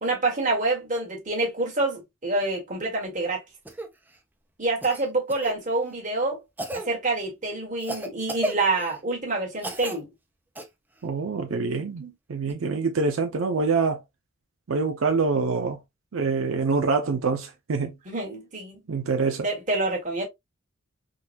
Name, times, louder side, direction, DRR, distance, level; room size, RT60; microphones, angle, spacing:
voice 1, 0.0-3.4 4.6-6.4 6.7-10.1 12.0-12.1 18.0-18.8 19.4-20.3, right 2 dB, 40° right, 1.5 m, -27 dB
Cough, 3.6-3.9 4.8-5.5 6.6-6.9 7.8-9.0 9.6-10.0 10.5-10.6 12.5-12.6, right 1 dB, 10° right, 0.4 m, -33 dB
voice 2, 11.0-12.0 12.3-14.0 14.7-15.8 16.1-17.9 18.9-19.5, right 4 dB, 85° right, 0.5 m, -25 dB
3.8 x 2.3 x 2.5 m
head